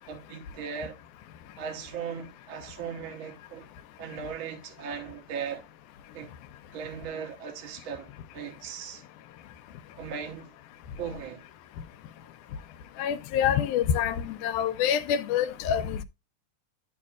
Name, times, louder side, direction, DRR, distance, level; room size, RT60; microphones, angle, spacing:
voice 1, 0.1-1.0 1.6-3.7 4.0-5.6 6.1-6.3 6.7-9.0 10.0-10.5 11.0-11.4, right 7 dB, 70° right, 1.2 m, -38 dB
voice 2, 13.0-16.0, left 9 dB, 85° left, 2.0 m, -26 dB
11.0 x 4.6 x 2.4 m
omnidirectional pair, 3.5 m